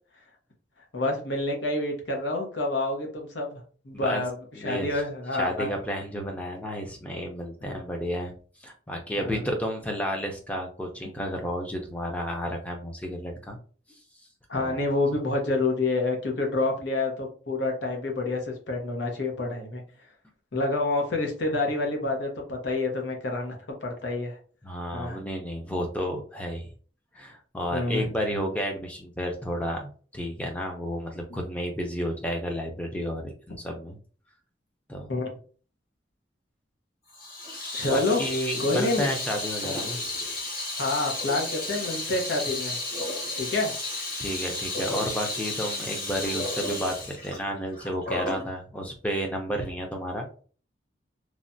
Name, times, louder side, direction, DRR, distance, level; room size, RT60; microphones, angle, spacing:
voice 1, 0.9-3.6 3.8-4.3 4.6-5.7 7.6-7.8 9.2-9.5 14.5-19.8 20.5-24.4 24.9-25.2 27.7-28.1 31.3-31.4 35.1-35.3 37.7-38.2 38.6-39.1 39.6-39.8 40.8-42.8 43.4-43.8, left 2 dB, 80° left, 2 dB, 0.9 m, -28 dB
voice 2, 3.9-4.2 4.6-5.0 5.4-8.3 8.6-13.6 13.9-14.0 14.5-14.8 24.6-26.7 27.1-34.0 34.9-35.1 37.8-40.0 44.2-50.3, equal, 5° left, 1 dB, 0.5 m, -31 dB
Water tap faucet / Sink (filling or washing), 37.1-48.5, left 2 dB, 50° left, 1.4 m, -33 dB
3.2 x 2.2 x 2.6 m, 0.41 s
head